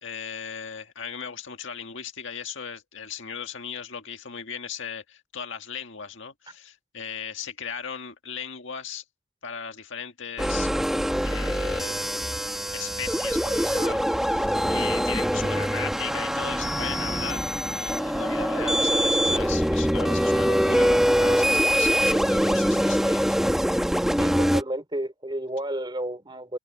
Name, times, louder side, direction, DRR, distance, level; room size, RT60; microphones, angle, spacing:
voice 1, 0.0-9.0 9.4-10.7 11.2-12.0 12.7-23.3, left 7 dB, 55° left, 1.9 m, -37 dB
sound 1, 10.4-24.6, equal, ahead, 1.3 m, -24 dB
voice 2, 24.2-26.6, right 1 dB, 20° right, 3.2 m, -31 dB
head